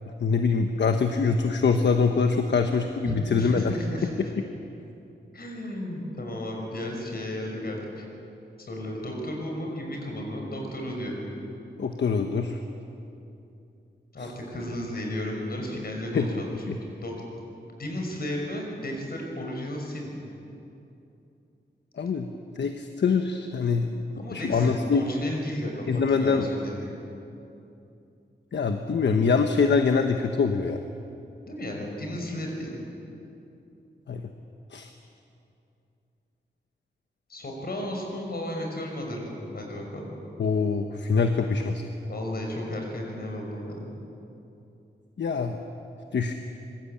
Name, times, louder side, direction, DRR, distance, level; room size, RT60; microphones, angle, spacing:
voice 1, 0.2-3.7 11.8-12.6 14.2-14.3 16.1-16.3 16.7-16.8 22.0-22.3 22.5-24.0 24.3-25.0 25.9-26.5 28.5-30.8 34.1-34.2 34.7-34.9 40.4-41.8 45.2-45.6 46.1-46.3, left 5 dB, 75° left, 6 dB, 1.2 m, -24 dB
voice 2, 3.1-4.1 5.3-8.0 8.7-11.3 14.1-17.1 17.8-20.3 24.1-27.1 31.5-32.8 37.3-40.2 42.1-44.0, left 1 dB, 55° left, 1 dB, 5.8 m, -34 dB
25.0 x 22.0 x 8.7 m, 2.8 s
wide cardioid pair, 160°, 19 cm